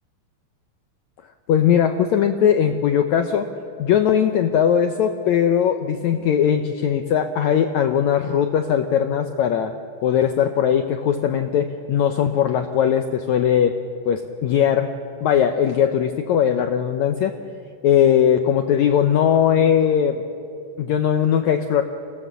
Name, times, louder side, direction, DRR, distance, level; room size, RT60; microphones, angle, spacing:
voice 1, 1.5-3.5 3.8-9.7 10.0-13.8 14.1-14.9 15.2-17.3 17.8-20.2 20.8-21.8, left 9 dB, 75° left, 6 dB, 1.7 m, -19 dB
28.0 x 18.0 x 6.9 m, 2.6 s
omnidirectional pair, 4.1 m